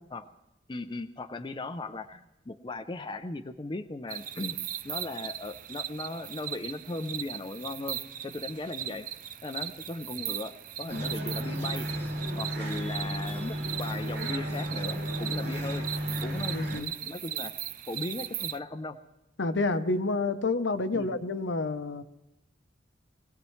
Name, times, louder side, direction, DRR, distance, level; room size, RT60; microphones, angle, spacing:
voice 1, 0.7-4.6 4.8-9.1 9.4-11.9 12.4-15.9 16.2-17.5 17.9-19.0 20.9-21.2, left 2 dB, 25° left, 7 dB, 0.5 m, -37 dB
sound 1, 4.1-18.6, right 11 dB, 45° right, 0.4 m, -38 dB
sound 2, 10.9-16.8, equal, 60° right, 2.7 m, -33 dB
voice 2, 16.5-16.9 19.4-22.0, left 3 dB, 70° left, 10 dB, 0.8 m, -29 dB
24.0 x 17.0 x 3.2 m, 0.93 s
head